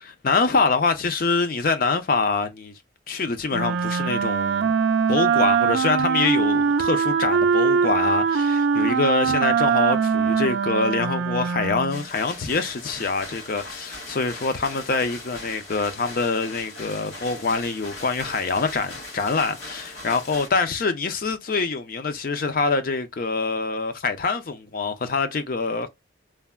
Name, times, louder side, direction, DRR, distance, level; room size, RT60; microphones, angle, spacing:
voice 1, 0.0-2.7 3.1-4.7 5.1-25.9, left 4 dB, 50° left, 0.5 m, -25 dB
Wind instrument woodwind instrument, 3.5-12.1, right 6 dB, 80° right, 0.3 m, -22 dB
sound 1, 11.9-20.5, left 2 dB, 75° left, 1.9 m, -39 dB
3.3 x 2.1 x 2.2 m
head